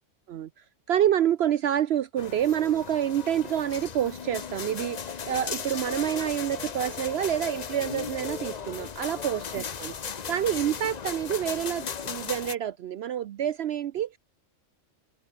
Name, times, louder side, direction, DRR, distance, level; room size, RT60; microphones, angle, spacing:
voice 1, 0.3-9.9 10.3-14.2, right 10 dB, 65° right, 0.8 m, -28 dB
sound 1, 2.2-12.5, left 7 dB, 40° left, 0.8 m, -36 dB
open air
omnidirectional pair, 1.3 m